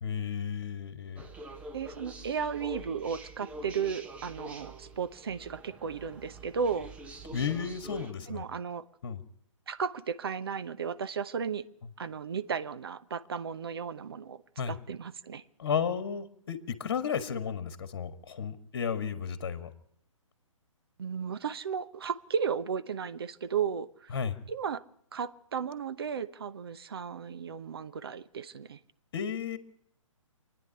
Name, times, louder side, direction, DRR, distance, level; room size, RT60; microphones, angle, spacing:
voice 1, 0.0-1.3 7.3-8.4 9.0-9.2 14.6-14.7 15.6-19.7 24.1-24.4 29.1-29.6, left 7 dB, 45° left, 10 dB, 1.6 m, -33 dB
sound 1, 1.2-8.1, right 1 dB, 5° right, 0.8 m, -45 dB
voice 2, 1.7-6.9 8.3-8.9 9.7-11.6 12.0-15.4 21.0-24.1 24.5-24.8 25.1-28.8, right 6 dB, 45° right, 12 dB, 0.9 m, -34 dB
26.5 x 9.9 x 9.9 m, 0.70 s
figure-of-eight pair, 130°, 17 cm